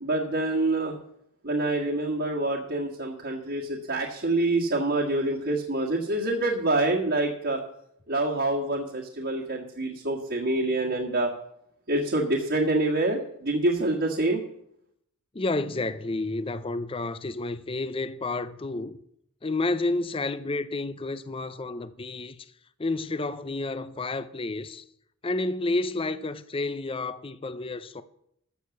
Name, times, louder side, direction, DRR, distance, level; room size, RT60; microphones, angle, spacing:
voice 1, 0.0-0.9 1.4-7.6 8.1-11.3 11.9-14.4, right 2 dB, 50° right, 1.7 m, -26 dB
voice 2, 15.3-19.0 19.4-22.4 22.8-24.8 25.2-28.0, left 2 dB, 25° left, 0.5 m, -30 dB
14.0 x 6.6 x 7.1 m
head